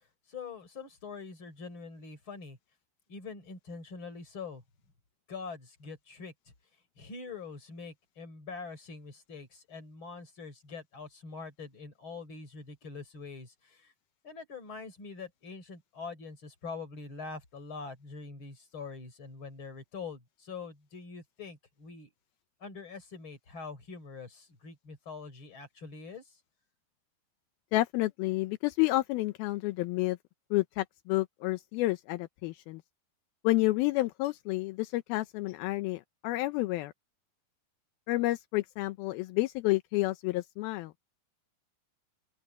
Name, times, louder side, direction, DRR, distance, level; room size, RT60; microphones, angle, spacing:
voice 1, 0.3-2.6 3.1-4.6 5.3-6.3 7.0-13.9 14.2-22.1 22.6-26.4, left 4 dB, 30° left, 5.0 m, -44 dB
voice 2, 27.7-30.2 30.5-32.8 33.4-36.9 38.1-40.9, left 19 dB, 85° left, 2.6 m, -30 dB
open air
omnidirectional pair, 4.3 m